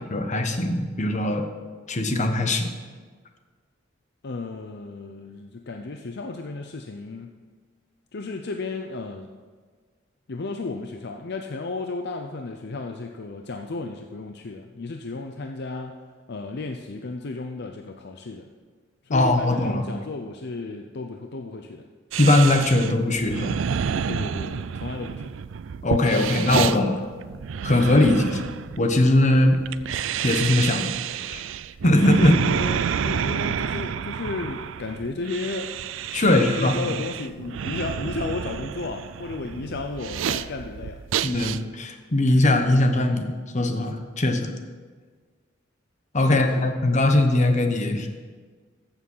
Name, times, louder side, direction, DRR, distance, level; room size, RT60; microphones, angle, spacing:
voice 1, 0.0-1.5 1.9-2.7 19.1-19.8 22.2-23.6 25.8-27.0 27.6-28.5 28.8-29.6 30.2-30.9 31.3-31.4 31.8-32.4 36.1-36.7 41.2-44.5 46.1-48.1, left 1 dB, 35° left, 5 dB, 1.1 m, -20 dB
voice 2, 4.2-7.3 8.1-9.3 10.3-16.0 16.3-18.5 19.0-21.9 24.1-25.3 32.2-35.7 36.2-41.0 46.3-46.7, left 3 dB, 55° left, 4 dB, 0.6 m, -33 dB
sound 1, 22.1-41.6, right 7 dB, 70° right, 0.4 m, -29 dB
14.5 x 7.1 x 5.5 m, 1.5 s
head